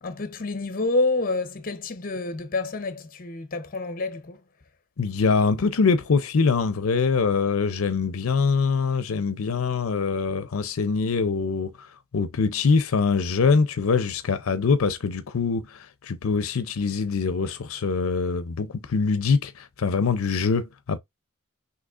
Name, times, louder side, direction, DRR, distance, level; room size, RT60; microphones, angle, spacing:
voice 1, 0.0-4.4, left 3 dB, 40° left, 0.7 m, -28 dB
voice 2, 5.0-21.0, left 5 dB, 75° left, 0.5 m, -24 dB
6.2 x 2.8 x 2.4 m
head